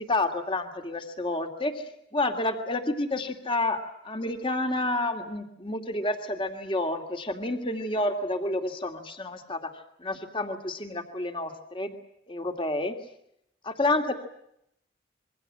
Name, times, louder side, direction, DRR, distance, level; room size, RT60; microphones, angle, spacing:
voice 1, 0.0-9.7 10.0-11.9 12.3-12.9 13.6-14.1, left 2 dB, 25° left, 6 dB, 2.6 m, -29 dB
27.0 x 23.5 x 7.6 m, 0.77 s
head